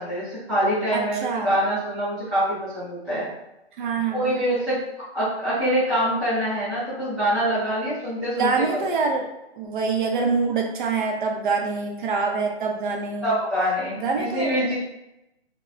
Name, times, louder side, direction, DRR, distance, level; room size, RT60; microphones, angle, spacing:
voice 1, 0.0-3.3 4.1-4.8 5.1-8.6 13.2-14.8, equal, ahead, -18 dB, 0.4 m, -25 dB
voice 2, 0.9-1.5 3.8-4.3 8.4-9.3 9.6-13.3 14.0-14.6, right 4 dB, 50° right, 1 dB, 0.6 m, -25 dB
3.0 x 2.1 x 2.4 m, 0.89 s
hypercardioid pair, 135°, 33 cm